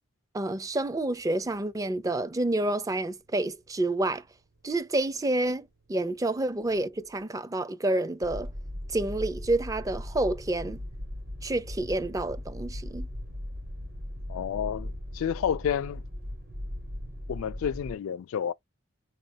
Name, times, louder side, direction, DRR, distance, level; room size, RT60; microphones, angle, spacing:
voice 1, 0.3-4.2 4.6-8.5 8.9-10.8 11.4-13.1, right 2 dB, 15° right, 0.4 m, -29 dB
sound 1, 0.7-1.6 2.6-3.1 4.2-5.1 5.5-5.8 6.2-7.2 8.2-18.0, left 1 dB, 45° right, 0.9 m, -38 dB
voice 2, 14.3-16.0 17.3-18.5, left 8 dB, 75° left, 0.3 m, -30 dB
4.8 x 3.0 x 2.7 m
head